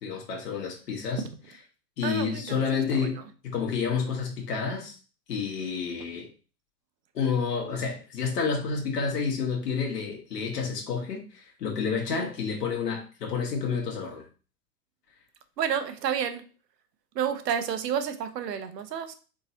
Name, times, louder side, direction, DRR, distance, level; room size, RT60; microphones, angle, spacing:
voice 1, 0.0-1.3 2.0-5.0 5.3-6.3 7.1-14.2, left 5 dB, 75° left, 1 dB, 1.6 m, -29 dB
voice 2, 2.0-2.6 3.0-3.1 12.1-12.3 15.6-16.4 17.1-19.1, right 8 dB, 75° right, 9 dB, 0.8 m, -30 dB
4.0 x 3.7 x 2.8 m, 0.36 s
hypercardioid pair, 100°, 49 cm